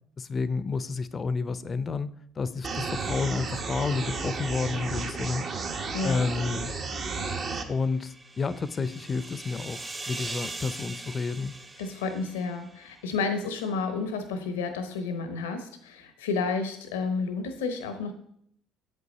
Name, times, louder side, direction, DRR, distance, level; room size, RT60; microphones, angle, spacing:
voice 1, 0.2-2.1 2.4-5.4 6.0-6.7 7.7-11.6, left 4 dB, 35° left, 16 dB, 0.5 m, -30 dB
sound 1, 2.6-7.6, right 4 dB, 50° right, 1.0 m, -33 dB
voice 2, 5.9-6.2 11.8-18.1, left 4 dB, 90° left, 7 dB, 0.8 m, -31 dB
sound 2, 7.6-13.0, right 2 dB, 25° right, 0.9 m, -41 dB
7.6 x 5.5 x 4.1 m, 0.68 s
hypercardioid pair, 65°, 0 cm